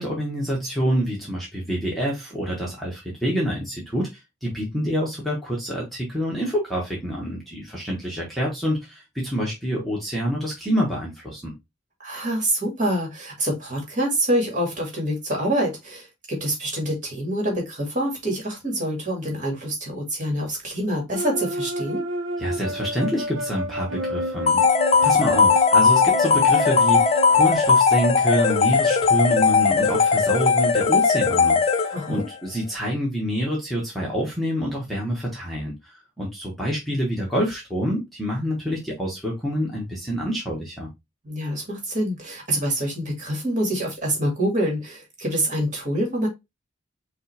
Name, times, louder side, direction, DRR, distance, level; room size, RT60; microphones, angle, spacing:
voice 1, 0.0-4.1 4.4-11.5 22.4-24.6 25.0-35.7 36.2-40.9, equal, ahead, 1.2 m, -27 dB
voice 2, 12.0-22.0 31.9-32.3 41.2-46.3, right 1 dB, 40° right, 2.0 m, -26 dB
sound 1, 21.1-27.6, equal, 70° right, 0.7 m, -30 dB
sound 2, 24.5-32.2, left 5 dB, 30° left, 0.5 m, -18 dB
5.4 x 2.5 x 3.3 m
head